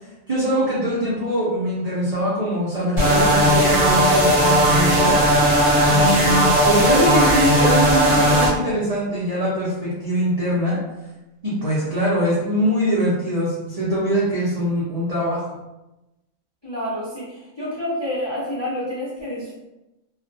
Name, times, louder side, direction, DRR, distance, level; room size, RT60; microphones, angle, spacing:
voice 1, 0.0-10.8 11.4-15.5, equal, 65° right, -8 dB, 0.3 m, -23 dB
sound 1, 3.0-8.5, right 1 dB, 20° right, 0.6 m, -16 dB
voice 2, 16.6-19.5, left 1 dB, 35° left, -9 dB, 0.4 m, -28 dB
2.3 x 2.2 x 2.6 m, 0.97 s
omnidirectional pair, 1.5 m